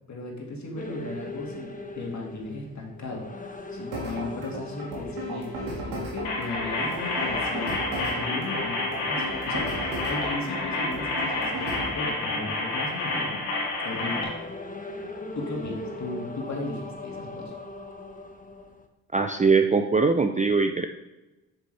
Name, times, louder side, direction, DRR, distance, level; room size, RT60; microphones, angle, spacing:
voice 1, 0.1-3.2 3.7-5.5 5.8-13.4 13.8-14.3 15.3-17.5, left 2 dB, 45° left, -1 dB, 2.2 m, -36 dB
sound 1, 0.7-18.9, left 2 dB, 20° left, 0.9 m, -40 dB
sound 2, 3.9-11.9, right 1 dB, 80° right, 2.1 m, -35 dB
sound 3, 6.2-14.2, left 2 dB, 75° left, 1.9 m, -29 dB
voice 2, 19.1-20.9, right 4 dB, 20° right, 6 dB, 0.5 m, -21 dB
7.2 x 6.6 x 3.4 m, 1.0 s
hypercardioid pair, 50°, 40 cm